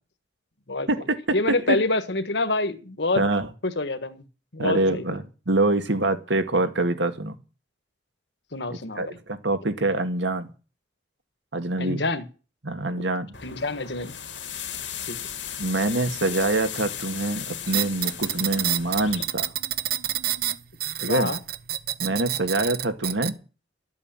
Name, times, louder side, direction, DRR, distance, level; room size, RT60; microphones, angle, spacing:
voice 1, 1.3-3.2 3.6-4.2 4.5-5.0 6.6-6.7 8.5-9.1 11.8-12.2 13.4-14.1 15.1-15.2 21.0-21.4, left 2 dB, 70° left, 11 dB, 1.6 m, -27 dB
voice 2, 3.2-3.5 4.6-7.4 8.7-10.5 11.5-12.0 12.6-13.3 15.6-19.5 21.0-21.3 22.0-23.4, right 2 dB, 85° right, 8 dB, 2.0 m, -25 dB
sound 1, 13.3-19.2, left 9 dB, 90° left, 2.4 m, -36 dB
sound 2, 17.7-23.3, right 12 dB, 55° right, 0.8 m, -28 dB
12.5 x 8.6 x 9.0 m, 0.34 s
head